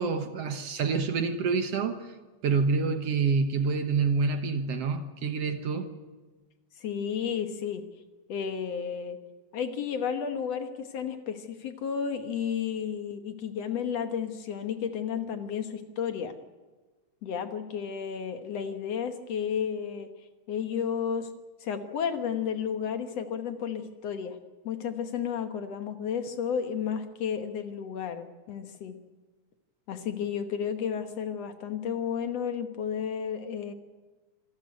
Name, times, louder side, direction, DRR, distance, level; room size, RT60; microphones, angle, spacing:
voice 1, 0.0-2.1 2.4-5.9, right 4 dB, 60° right, 8 dB, 2.0 m, -27 dB
voice 2, 6.8-7.8 8.3-9.2 9.5-16.3 17.2-20.1 20.5-21.3 21.6-24.4 24.7-29.0 29.9-33.7, left 7 dB, 60° left, 7 dB, 2.1 m, -32 dB
26.5 x 13.0 x 9.6 m, 1.3 s
omnidirectional pair, 3.5 m